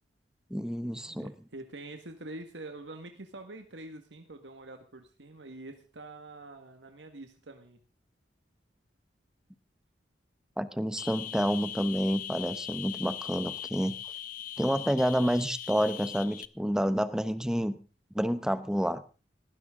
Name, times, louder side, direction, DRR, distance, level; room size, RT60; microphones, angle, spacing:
voice 1, 0.5-1.3 10.6-13.9 14.6-17.8 18.1-19.0, equal, 5° right, 12 dB, 0.9 m, -29 dB
voice 2, 1.1-7.8, right 2 dB, 80° right, 5 dB, 1.8 m, -45 dB
sound 1, 11.0-16.5, left 11 dB, 50° left, 0.7 m, -40 dB
19.0 x 16.0 x 3.8 m, 0.35 s
head